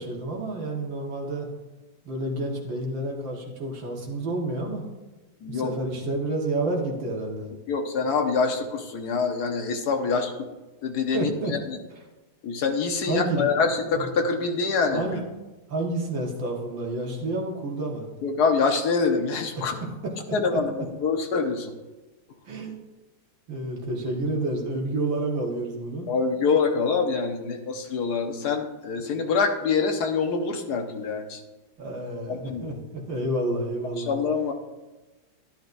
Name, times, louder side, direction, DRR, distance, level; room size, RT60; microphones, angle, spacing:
voice 1, 0.0-1.5 2.0-4.8 5.5-7.5 10.1-10.2 11.1-11.6 13.1-14.1 14.9-15.2 15.7-18.1 19.6-19.7 20.0-20.1 20.5-20.6 22.5-22.8 23.5-26.1 31.8-34.1, right 2 dB, 90° right, -1 dB, 2.4 m, -29 dB
voice 2, 5.4-5.7 7.7-10.5 10.8-11.8 12.4-15.0 18.2-19.8 20.3-21.7 26.1-31.4 32.3-32.7 34.0-34.5, left 5 dB, 60° left, 4 dB, 1.6 m, -25 dB
11.5 x 11.0 x 2.6 m, 1.2 s
omnidirectional pair, 2.0 m